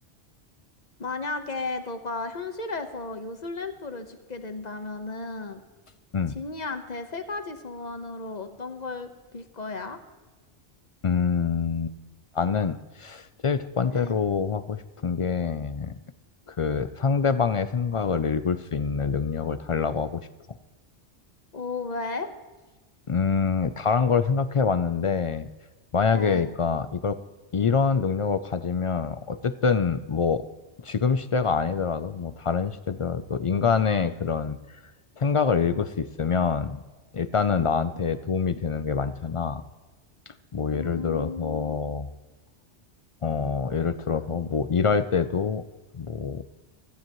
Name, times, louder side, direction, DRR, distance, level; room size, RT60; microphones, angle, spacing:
voice 1, 1.0-5.6 6.3-10.0 13.9-14.2 21.5-22.3 26.1-26.5 40.7-41.8, left 3 dB, 40° left, 8 dB, 1.2 m, -34 dB
voice 2, 11.0-11.9 12.3-15.9 16.5-20.3 23.1-25.5 25.9-27.2 27.5-30.4 30.8-34.6 35.2-36.8 37.1-39.6 40.3-42.1 43.2-45.6 45.9-46.4, left 5 dB, 60° left, 13 dB, 0.3 m, -25 dB
16.5 x 14.5 x 3.1 m, 1.3 s
omnidirectional pair, 1.2 m